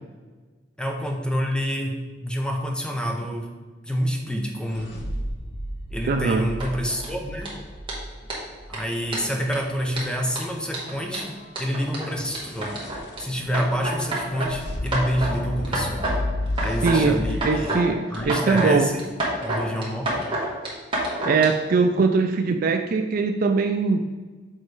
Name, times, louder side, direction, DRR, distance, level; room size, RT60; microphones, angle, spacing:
voice 1, 0.8-3.5 3.8-4.9 5.9-7.5 8.7-12.8 13.2-16.1 16.6-17.8 18.1-19.1 19.4-20.3, equal, 5° left, 2 dB, 0.6 m, -28 dB
sound 1, 4.7-8.8 12.1-17.4, left 1 dB, 60° left, 0.8 m, -32 dB
voice 2, 6.1-6.4 16.8-18.9 21.2-24.1, right 4 dB, 50° right, 5 dB, 0.3 m, -21 dB
sound 2, 6.6-7.1 7.4-7.5 7.9-8.0 8.3-8.4 8.7-8.8 9.1-9.6 9.9-13.2 13.5-14.5 14.9-15.4 15.6-16.2 16.5-17.0 17.3-17.8 18.1-18.7 19.0-21.5, right 1 dB, 30° right, 1.4 m, -28 dB
6.5 x 3.1 x 4.7 m, 1.4 s
head